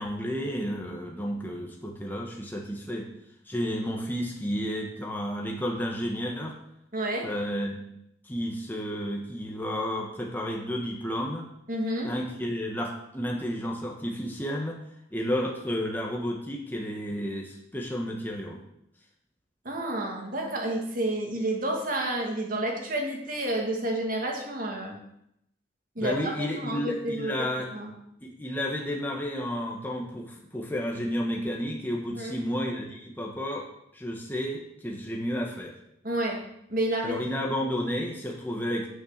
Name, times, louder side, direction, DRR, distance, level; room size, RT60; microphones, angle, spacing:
voice 1, 0.0-3.1 3.5-6.6 7.2-7.8 8.2-11.5 12.0-14.8 15.1-18.6 26.0-27.7 28.2-33.7 33.9-35.7 37.0-38.9, equal, 10° left, 0 dB, 1.2 m, -31 dB
voice 2, 6.9-7.3 11.7-12.1 19.6-25.0 26.0-27.5 27.7-27.9 32.1-32.3 36.0-36.4 36.7-37.2, right 1 dB, 50° right, 1 dB, 2.2 m, -30 dB
9.7 x 6.3 x 6.5 m, 0.77 s
head